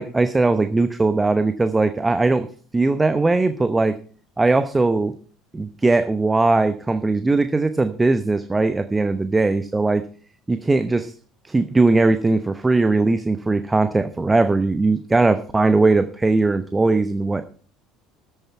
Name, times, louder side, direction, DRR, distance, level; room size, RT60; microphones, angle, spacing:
voice 1, 0.0-2.5 2.7-4.0 4.4-5.1 5.5-10.0 10.5-11.1 11.4-17.4, right 3 dB, 15° right, 11 dB, 0.8 m, -19 dB
14.0 x 9.3 x 4.5 m, 0.42 s
figure-of-eight pair, 60°, 0 cm